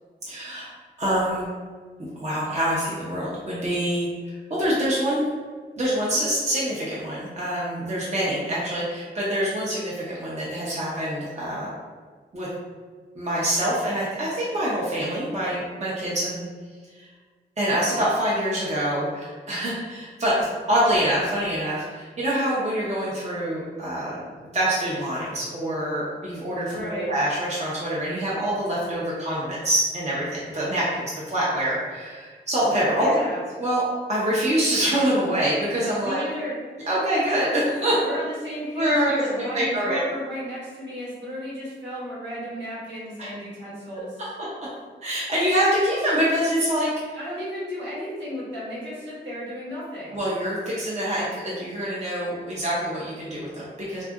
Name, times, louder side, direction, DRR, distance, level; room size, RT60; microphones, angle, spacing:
voice 1, 0.3-0.7 1.0-1.5 2.0-5.2 5.7-11.7 12.3-12.5 13.1-16.5 16.9-17.1 17.6-33.1 33.6-33.8 34.1-36.2 36.9-38.0 38.8-40.0 43.2-43.3 45.0-47.2 50.1-54.0, right 1 dB, 35° right, -7 dB, 0.7 m, -25 dB
voice 2, 26.7-27.1 33.0-33.4 36.0-36.6 38.0-44.1 47.1-50.2, equal, 75° right, -8 dB, 1.2 m, -34 dB
2.7 x 2.4 x 2.3 m, 1.5 s
cardioid pair, 60°, 19 cm